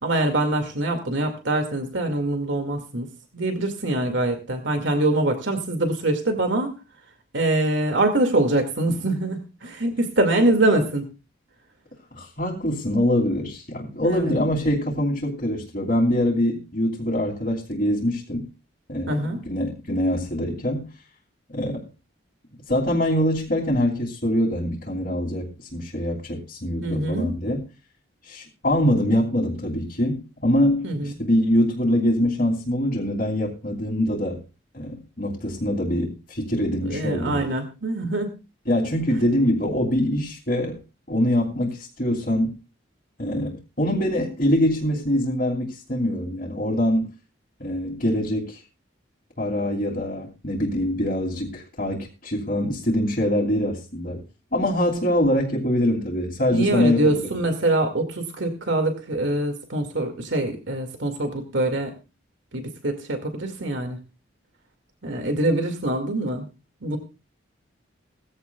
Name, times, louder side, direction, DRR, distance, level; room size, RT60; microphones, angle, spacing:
voice 1, 0.0-3.1 3.3-6.7 7.3-11.0 14.0-14.2 19.1-19.4 26.8-27.4 30.8-31.1 36.8-38.3 56.5-61.9 62.5-64.0 65.0-66.5 66.8-67.0, right 2 dB, 75° right, 5 dB, 2.2 m, -24 dB
voice 2, 12.1-18.5 18.9-20.9 21.5-21.8 22.7-27.6 28.2-34.4 34.7-37.4 38.7-40.8 41.1-42.5 43.2-47.1 47.6-48.6 49.4-54.2 54.5-57.3, left 1 dB, 50° left, -5 dB, 3.0 m, -24 dB
19.5 x 15.5 x 2.4 m, 0.30 s
head